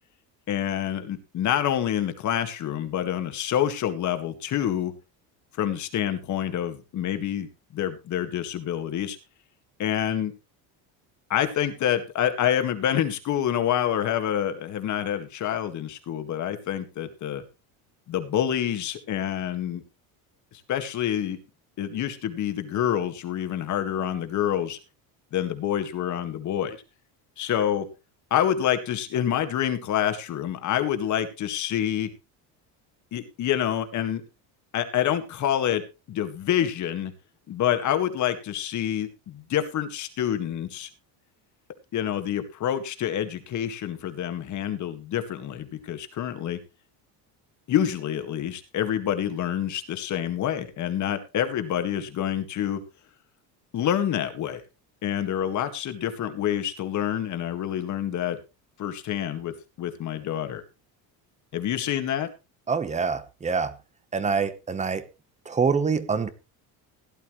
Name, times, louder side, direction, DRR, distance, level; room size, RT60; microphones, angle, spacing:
voice 1, 0.5-4.9 5.6-9.2 9.8-10.3 11.3-17.4 18.1-19.8 20.7-21.4 21.8-24.8 25.3-26.8 27.4-27.9 28.3-32.1 33.1-34.2 34.7-35.8 36.1-37.1 37.5-40.9 41.9-46.6 47.7-52.8 53.7-54.6 55.0-58.4 58.8-60.6 61.5-62.3, left 10 dB, 45° left, 1.9 m, -27 dB
voice 2, 62.7-63.7 64.1-65.0 65.5-66.3, right 5 dB, 15° right, 1.0 m, -25 dB
17.0 x 11.5 x 3.2 m
cardioid pair, 150°, 41 cm